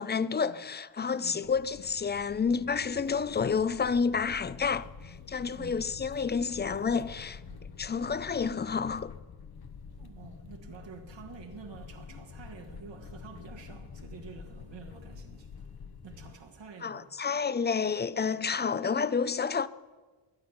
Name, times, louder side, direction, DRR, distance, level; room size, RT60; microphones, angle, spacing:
voice 1, 0.0-7.4 7.8-9.1 16.8-19.7, left 5 dB, 25° left, 0.4 m, -30 dB
voice 2, 1.2-1.5 5.5-6.0 7.5-7.7 10.0-15.7 16.0-17.1, right 5 dB, 70° right, 1.8 m, -48 dB
sound 1, 1.4-16.4, left 5 dB, 55° left, 1.0 m, -47 dB
21.5 x 8.5 x 5.9 m
wide cardioid pair, 105°, 45 cm